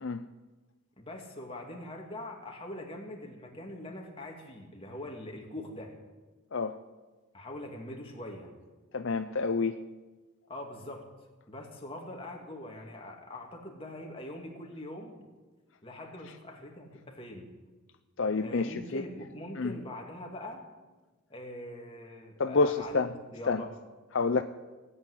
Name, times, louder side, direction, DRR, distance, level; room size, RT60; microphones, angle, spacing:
voice 1, 1.0-5.9 7.3-8.5 10.5-11.1 11.5-15.2 15.8-17.5 18.4-20.6 21.3-23.7, left 1 dB, 25° left, 2.4 m, -43 dB
voice 2, 8.9-9.7 18.2-19.0 19.6-19.7 22.4-23.1 23.5-23.6 24.1-24.4, left 4 dB, 55° left, 0.5 m, -28 dB
17.5 x 8.5 x 9.7 m
head